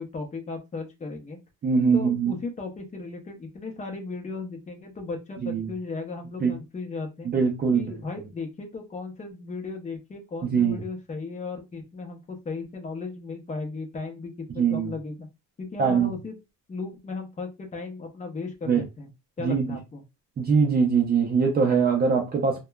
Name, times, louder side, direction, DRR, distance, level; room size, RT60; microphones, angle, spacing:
voice 1, 0.0-1.4 1.9-7.3 7.7-15.3 15.6-16.3 16.7-19.1 19.4-20.0, left 3 dB, 20° left, 0.7 m, -36 dB
voice 2, 1.6-2.3 5.4-5.7 6.4-6.6 7.2-7.9 10.5-10.8 14.6-14.9 15.8-16.1 18.7-18.8 19.4-19.8 20.4-22.6, right 5 dB, 30° right, 0.5 m, -22 dB
2.8 x 2.2 x 2.2 m
cardioid pair, 130°, 33 cm